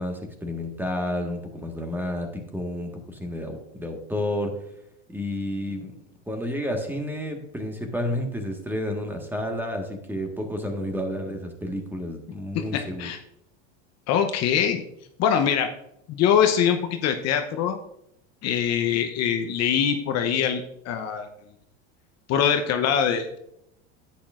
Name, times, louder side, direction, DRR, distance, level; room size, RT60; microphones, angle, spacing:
voice 1, 0.0-4.6 5.1-6.0 6.3-13.1, left 1 dB, 5° right, 3 dB, 1.5 m, -30 dB
voice 2, 12.5-13.2 14.1-14.8 15.2-15.7 16.1-17.8 18.4-21.3 22.3-23.4, left 8 dB, 45° left, 6 dB, 0.8 m, -23 dB
10.0 x 8.5 x 2.5 m, 0.75 s
supercardioid pair, 105°, 36 cm